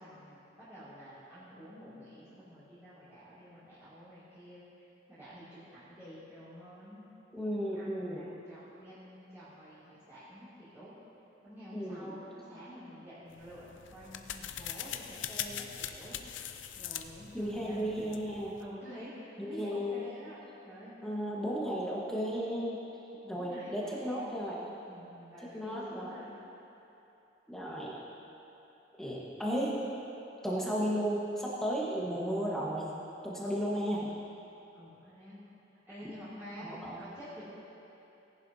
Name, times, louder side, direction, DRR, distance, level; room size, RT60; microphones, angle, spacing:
voice 1, 0.0-4.7 5.1-7.0 7.5-10.9 11.4-16.2 16.7-18.2 18.6-20.4 20.6-20.9 23.2-24.3 24.9-26.3 34.7-35.4 35.9-37.5, equal, 15° right, -15 dB, 2.7 m, -49 dB
voice 2, 7.3-8.2 11.7-12.1 17.3-18.5 19.5-20.0 21.0-22.8 23.3-24.6 25.4-26.2 27.5-27.9 29.0-29.8 30.4-32.9 33.2-34.1 36.6-37.0, equal, 5° left, -6 dB, 1.3 m, -34 dB
sound 1, 13.3-18.7, left 10 dB, 85° left, 0.5 m, -42 dB
18.0 x 11.0 x 2.8 m, 3.0 s
head